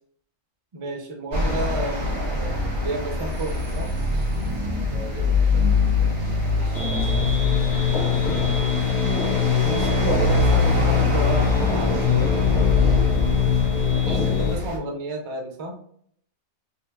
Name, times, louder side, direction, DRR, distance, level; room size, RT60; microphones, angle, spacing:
voice 1, 0.7-3.9 6.4-7.3 9.6-12.4 14.3-15.8, right 2 dB, 35° right, 1 dB, 0.5 m, -32 dB
sound 1, 1.3-14.8, left 3 dB, 90° right, 1.4 m, -24 dB
voice 2, 4.8-6.2 8.7-9.0 13.5-14.5, right 1 dB, 75° right, 2 dB, 1.1 m, -43 dB
sound 2, 6.7-14.5, left 6 dB, 40° left, 0.7 m, -22 dB
3.0 x 2.5 x 2.4 m, 0.62 s
omnidirectional pair, 1.4 m